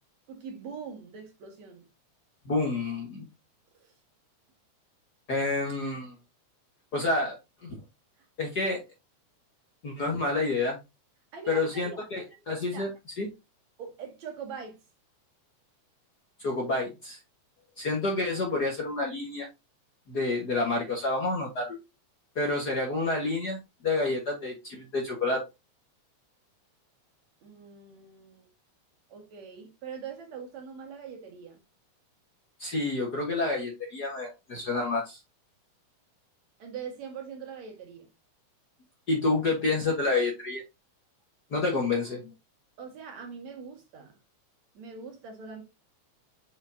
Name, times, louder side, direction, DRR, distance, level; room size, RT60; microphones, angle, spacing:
voice 1, 0.3-1.8 3.7-3.9 11.3-12.1 12.7-12.9 13.8-14.8 27.4-28.5 29.1-31.6 36.6-38.1 42.8-44.2 44.7-45.6, right 6 dB, 65° right, 3.0 m, -42 dB
voice 2, 2.4-3.2 5.3-6.1 6.9-7.8 8.4-8.8 9.8-10.8 11.5-12.9 13.2-13.3 16.4-17.2 17.8-19.5 20.1-21.8 22.3-25.4 32.6-35.2 39.1-40.6 41.5-42.3, left 3 dB, 40° left, 1.5 m, -29 dB
7.0 x 5.1 x 2.7 m
omnidirectional pair, 3.4 m